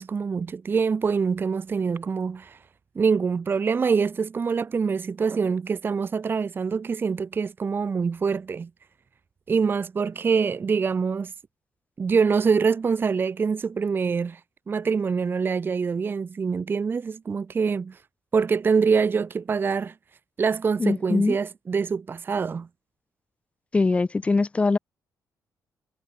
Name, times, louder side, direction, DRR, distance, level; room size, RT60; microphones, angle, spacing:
voice 1, 0.0-2.6 3.0-8.7 9.5-11.3 12.0-14.4 14.7-18.0 18.3-19.9 20.4-22.7, right 5 dB, 30° right, 0.6 m, -25 dB
voice 2, 20.8-21.4 23.7-24.8, left 3 dB, 15° left, 0.4 m, -22 dB
cardioid pair, 125°, 7 cm